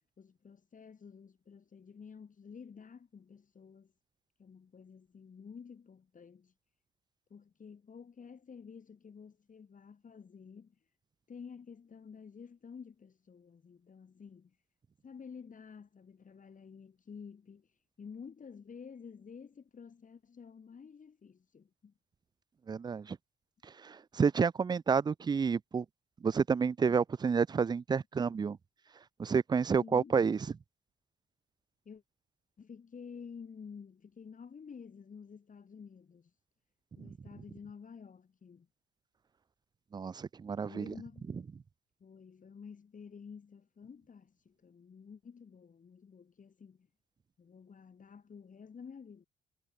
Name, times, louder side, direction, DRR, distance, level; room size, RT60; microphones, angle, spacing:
voice 1, 0.2-3.9 4.4-6.5 7.3-10.8 11.3-14.6 15.0-21.9 29.8-30.2 31.9-32.0 32.6-36.3 37.0-38.7 40.7-41.3 42.0-46.9 47.4-49.2, left 6 dB, 40° left, 4.0 m, -51 dB
voice 2, 22.7-23.2 23.8-25.9 26.2-28.6 29.2-30.4 37.0-37.1 39.9-40.9, right 6 dB, 20° right, 0.3 m, -30 dB
cardioid pair, 90°, 20 cm